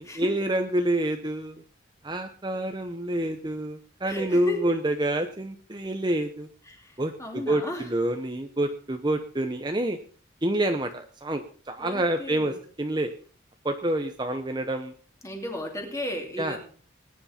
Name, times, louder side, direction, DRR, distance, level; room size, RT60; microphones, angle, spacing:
voice 1, 0.0-1.6 2.0-6.5 7.0-10.0 10.4-13.1 13.6-14.9 16.4-16.6, right 1 dB, 20° right, 6 dB, 0.8 m, -28 dB
voice 2, 4.0-4.7 6.6-7.9 11.8-12.6 15.2-16.7, equal, 15° left, 2 dB, 2.8 m, -35 dB
20.0 x 9.6 x 4.3 m, 0.43 s
head